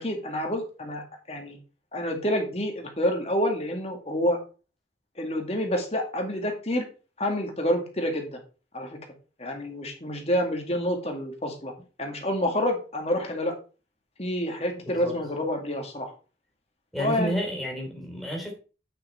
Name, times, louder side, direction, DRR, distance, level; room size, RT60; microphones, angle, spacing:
voice 1, 0.0-1.6 1.9-4.4 5.2-6.8 7.2-8.4 8.7-9.0 9.4-11.7 12.0-13.6 14.2-16.1 17.0-17.3, equal, 35° left, 2.2 m, -28 dB
voice 2, 14.8-15.1 16.9-18.5, equal, ahead, 3.2 m, -31 dB
8.8 x 6.1 x 4.4 m
head